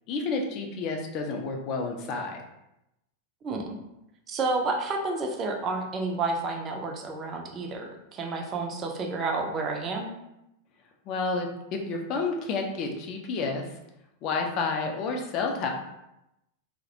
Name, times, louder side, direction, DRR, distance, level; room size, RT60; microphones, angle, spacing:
voice 1, 0.1-2.4 11.1-13.6 14.2-15.7, left 4 dB, 40° left, 2 dB, 0.4 m, -30 dB
voice 2, 4.3-10.1, right 3 dB, 30° right, 3 dB, 0.4 m, -30 dB
2.3 x 2.1 x 2.7 m, 0.87 s
figure-of-eight pair, 90°, 0 cm